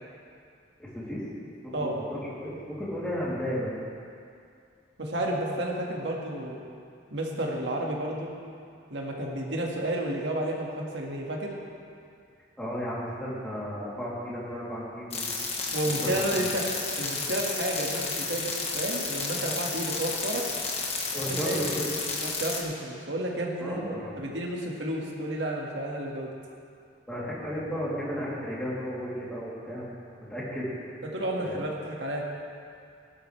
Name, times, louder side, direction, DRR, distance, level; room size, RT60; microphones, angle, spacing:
voice 1, 0.8-1.2 1.6-3.7 12.6-15.2 16.0-16.1 21.1-21.9 23.6-24.1 27.1-29.9 30.3-30.7 31.4-31.6, equal, 5° left, -8 dB, 3.2 m, -33 dB
voice 2, 5.0-6.6 7.1-8.3 8.9-11.5 15.7-16.6 17.0-20.4 21.3-21.8 22.2-26.3 31.0-32.2, right 1 dB, 75° right, -2 dB, 2.0 m, -31 dB
sound 1, 15.1-22.6, left 4 dB, 35° left, 1.5 m, -32 dB
18.0 x 11.5 x 3.4 m, 2.4 s
head